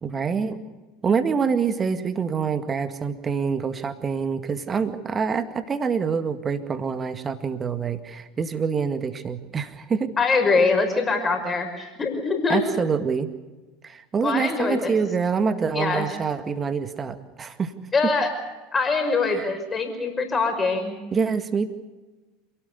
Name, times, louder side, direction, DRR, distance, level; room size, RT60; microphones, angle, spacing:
voice 1, 0.0-0.6 1.0-10.1 12.5-13.3 13.8-17.7 19.3-19.5 21.1-21.7, right 5 dB, 25° right, 10 dB, 2.0 m, -26 dB
voice 2, 10.2-12.6 14.2-14.9 15.7-16.1 17.9-18.3 18.7-21.0, left 4 dB, 20° left, 5 dB, 5.8 m, -23 dB
28.0 x 18.0 x 6.9 m, 1.2 s
figure-of-eight pair, 75°, 0 cm